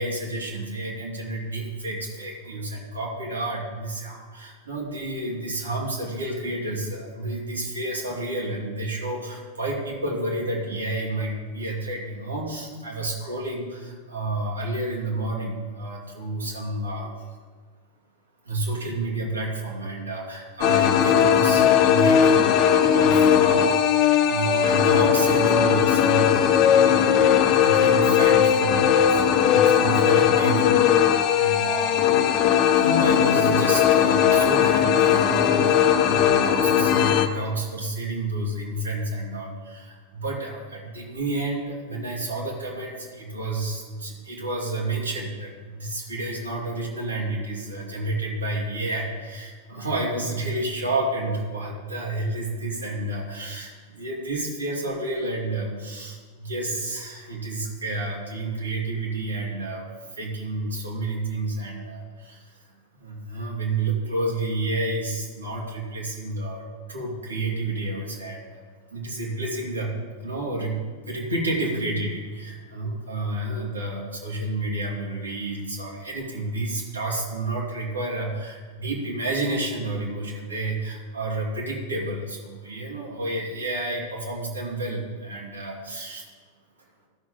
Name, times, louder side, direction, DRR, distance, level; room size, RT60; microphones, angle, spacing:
voice 1, 0.0-17.3 18.4-23.9 24.3-32.1 32.4-59.8 60.1-66.6 66.9-68.6 68.9-70.8 71.0-86.3, right 2 dB, 75° right, -3 dB, 2.5 m, -30 dB
sound 1, 20.6-37.3, left 9 dB, 40° left, 0.7 m, -19 dB
14.0 x 6.2 x 3.8 m, 1.5 s
figure-of-eight pair, 90°, 0 cm